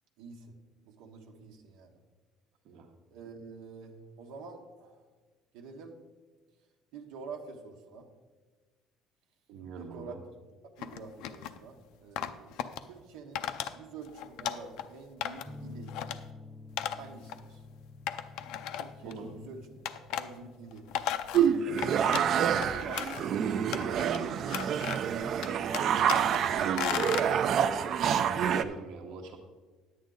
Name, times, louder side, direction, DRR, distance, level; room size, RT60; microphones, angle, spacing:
voice 1, 0.2-0.5 0.8-2.0 3.1-5.0 5.5-6.0 6.9-8.1 9.7-10.1 10.6-13.4 13.7-15.9 16.9-17.6 18.7-20.9 22.6-23.3 23.9-24.4 25.3-25.9 26.5-26.8, right 4 dB, 90° right, 2 dB, 1.1 m, -47 dB
voice 2, 9.5-10.2 19.0-19.3 28.1-29.4, right 4 dB, 70° right, 3 dB, 1.1 m, -43 dB
sound 1, 10.8-11.6 12.2-12.8 13.4-13.7 14.1-14.9 15.2-15.6 15.9-16.2 16.8-17.0 17.3-17.4 18.1-19.1 19.9-20.3 20.7-22.3 22.6-23.3 23.7-24.2 24.5-25.2 25.4-26.4 26.8-27.3, left 10 dB, 75° left, 0.5 m, -35 dB
sound 2, 15.4-23.1, left 3 dB, ahead, 0.7 m, -50 dB
sound 3, 21.3-28.6, right 8 dB, 45° right, 0.4 m, -27 dB
10.0 x 8.6 x 3.9 m, 1.3 s
cardioid pair, 155°, 0 cm